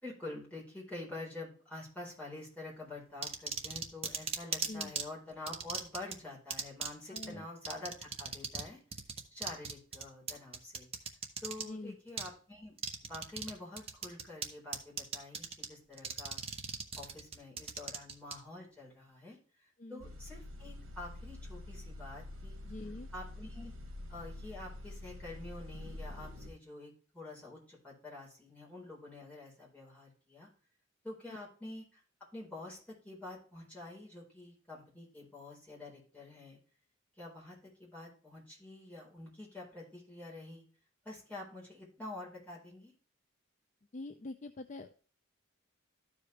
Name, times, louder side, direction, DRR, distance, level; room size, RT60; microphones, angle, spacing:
voice 1, 0.0-8.8 9.3-10.9 11.4-16.4 17.0-22.6 23.1-23.7 24.1-30.5 31.0-32.0 32.3-36.6 37.2-40.6 41.0-42.9, left 2 dB, 5° left, -6 dB, 4.1 m, -47 dB
sound 1, 3.2-5.0 5.5-6.1 6.5-6.9 7.2-7.3 7.6-8.7 8.9-11.6 12.2-12.3 12.8-13.5 13.8-14.5 14.7-15.7 16.0-18.3, right 6 dB, 30° right, 1.0 m, -37 dB
voice 2, 7.1-7.5 11.6-12.0 19.8-20.0 22.6-23.1 43.9-45.0, left 2 dB, 35° left, 8 dB, 0.4 m, -44 dB
sound 2, 20.0-26.5, left 1 dB, 70° right, 2.3 m, -46 dB
13.0 x 5.1 x 3.2 m, 0.41 s
head